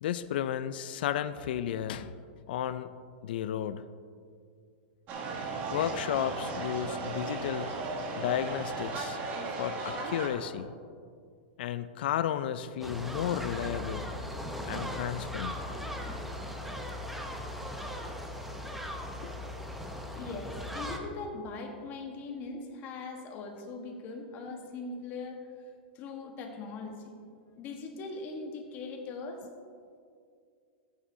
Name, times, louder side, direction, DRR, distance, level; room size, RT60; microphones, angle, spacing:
voice 1, 0.0-2.2 2.5-2.9 3.2-3.8 5.7-7.7 8.2-9.2 9.6-10.7 11.6-14.0 14.6-15.5 19.2-19.3, left 10 dB, 65° left, 13 dB, 0.4 m, -33 dB
sound 1, 5.1-10.3, right 3 dB, 35° right, 1.4 m, -36 dB
sound 2, 12.8-21.0, equal, 5° right, 0.8 m, -38 dB
voice 2, 15.6-16.3 20.0-25.4 25.9-27.1 27.5-29.5, left 3 dB, 35° left, 3 dB, 1.3 m, -41 dB
14.5 x 8.8 x 2.7 m, 2.3 s
supercardioid pair, 145°, 6 cm